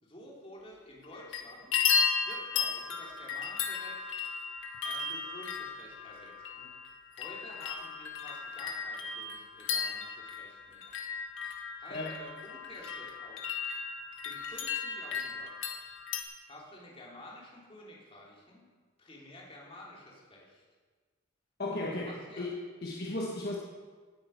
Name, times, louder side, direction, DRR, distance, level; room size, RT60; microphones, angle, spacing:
voice 1, 0.0-1.7 2.1-4.1 4.8-6.7 7.1-10.9 11.8-13.6 14.2-15.7 16.4-18.7 19.0-20.6 21.7-22.5, left 1 dB, 30° left, -3 dB, 3.1 m, -51 dB
sound 1, 1.0-1.4 1.7-16.2, left 6 dB, 75° left, 1.5 m, -35 dB
voice 2, 11.9-12.2 21.6-23.6, left 2 dB, 50° left, -2 dB, 1.4 m, -36 dB
18.5 x 8.7 x 5.7 m, 1.5 s
head